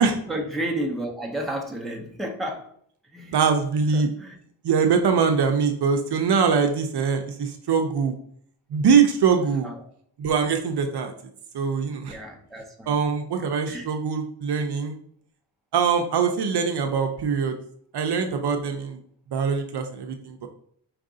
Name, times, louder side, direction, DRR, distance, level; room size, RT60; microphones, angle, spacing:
voice 1, 0.0-2.7 3.1-3.4 3.9-4.4 9.6-9.8 12.1-13.0 13.4-13.9, right 1 dB, ahead, 0 dB, 0.6 m, -32 dB
voice 2, 3.3-4.1 4.6-8.1 8.7-9.7 10.2-11.1 11.5-12.2 12.9-15.0 15.7-17.6 17.9-19.0 19.3-20.5, right 6 dB, 65° right, 5 dB, 0.6 m, -23 dB
4.7 x 2.5 x 3.7 m, 0.63 s
wide cardioid pair, 120°, 44 cm